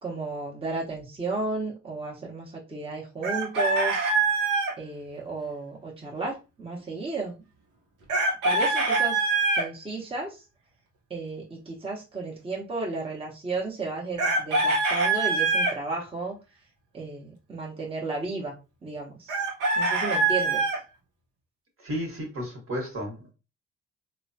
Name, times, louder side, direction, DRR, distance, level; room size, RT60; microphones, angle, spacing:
voice 1, 0.0-4.1 4.8-7.4 8.4-9.3 9.5-10.4 11.1-16.4 16.9-18.6 18.8-19.4 19.7-20.6, right 3 dB, 20° right, -3 dB, 0.8 m, -33 dB
Chicken rooster, 3.2-4.7 8.1-9.7 14.2-15.7 19.3-20.8, right 3 dB, 90° right, 0.8 m, -24 dB
voice 2, 21.8-23.3, equal, 45° right, 1 dB, 1.2 m, -33 dB
3.0 x 2.2 x 2.6 m, 0.29 s
cardioid pair, 90°, 30 cm